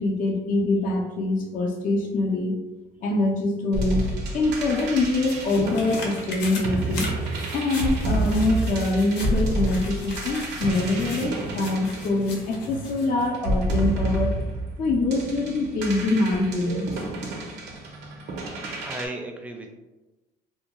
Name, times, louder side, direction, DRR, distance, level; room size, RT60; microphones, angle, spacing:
voice 1, 0.0-2.6 3.0-4.1 4.3-7.1 7.5-14.5 14.8-17.1, left 2 dB, 55° left, 0 dB, 0.5 m, -24 dB
sound 1, 3.7-12.7 13.3-19.1, right 2 dB, 85° right, 0.6 m, -29 dB
sound 2, 4.6-13.3 13.7-13.8, left 2 dB, 90° left, 0.7 m, -39 dB
voice 2, 18.6-19.7, right 1 dB, 10° right, 2 dB, 0.4 m, -36 dB
2.7 x 2.2 x 2.9 m, 1.1 s
cardioid pair, 110°, 17 cm